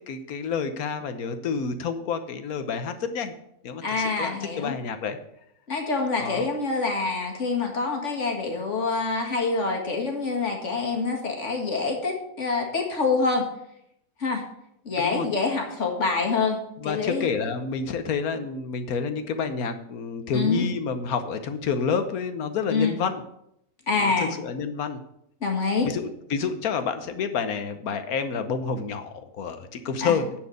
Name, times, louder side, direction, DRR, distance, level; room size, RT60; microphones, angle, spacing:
voice 1, 0.0-3.3 3.6-5.2 6.2-6.5 15.0-15.3 16.8-23.2 24.0-25.0 25.8-30.3, left 5 dB, 80° left, 9 dB, 1.4 m, -29 dB
voice 2, 3.8-4.7 5.7-13.4 14.2-14.4 14.9-16.6 16.8-17.3 20.3-20.7 22.7-23.0 23.9-24.4 25.4-25.9 30.0-30.2, left 4 dB, 55° left, 1 dB, 2.1 m, -26 dB
10.0 x 4.7 x 7.8 m, 0.76 s
omnidirectional pair, 1.5 m